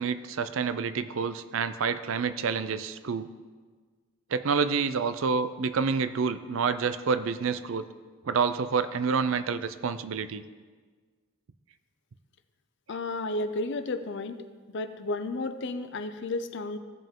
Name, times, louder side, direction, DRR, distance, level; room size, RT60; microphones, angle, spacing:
voice 1, 0.0-3.3 4.3-7.8 8.3-10.4, right 5 dB, 70° right, 13 dB, 0.5 m, -28 dB
voice 2, 12.9-14.4 14.7-16.8, left 2 dB, 60° left, 10 dB, 0.6 m, -32 dB
16.5 x 5.5 x 3.7 m, 1.5 s
head